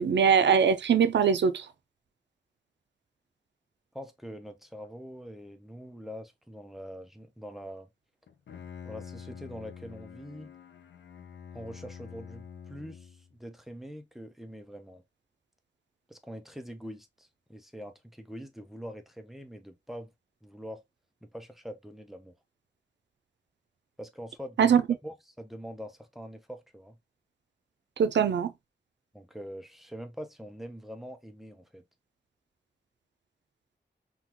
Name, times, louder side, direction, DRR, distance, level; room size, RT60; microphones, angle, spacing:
voice 1, 0.0-1.7 24.6-25.0 28.0-28.5, right 7 dB, 85° right, 0.5 m, -22 dB
voice 2, 3.9-7.9 8.9-10.5 11.5-15.0 16.1-20.1 20.4-20.8 21.2-22.4 24.0-27.0 29.1-31.8, equal, ahead, 0.5 m, -44 dB
Bowed string instrument, 8.3-13.3, left 7 dB, 85° left, 0.4 m, -46 dB
3.7 x 2.3 x 2.8 m
wide cardioid pair, 125°, 18 cm